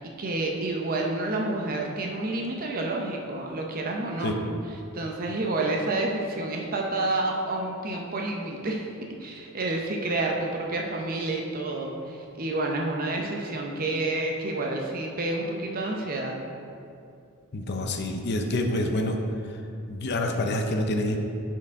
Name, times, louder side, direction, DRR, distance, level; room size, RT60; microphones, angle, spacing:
voice 1, 0.0-4.4 4.9-8.9 9.2-16.4, right 2 dB, 40° right, 0 dB, 0.6 m, -29 dB
voice 2, 17.5-19.2 19.5-19.6 19.9-21.2, left 1 dB, 50° left, 4 dB, 0.6 m, -27 dB
9.4 x 4.6 x 3.6 m, 2.5 s
head